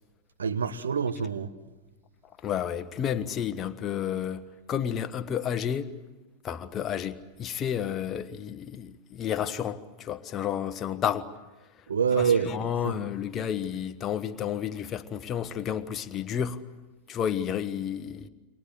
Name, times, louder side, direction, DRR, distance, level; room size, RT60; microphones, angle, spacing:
voice 1, 0.4-1.5 11.9-12.5 12.8-13.0, right 6 dB, 70° right, 1.3 m, -26 dB
voice 2, 2.4-4.4 4.7-5.9 6.4-11.3 12.2-16.6 17.1-18.3, left 9 dB, 30° left, 1.2 m, -31 dB
28.0 x 24.5 x 7.9 m
figure-of-eight pair, 90°, 0 cm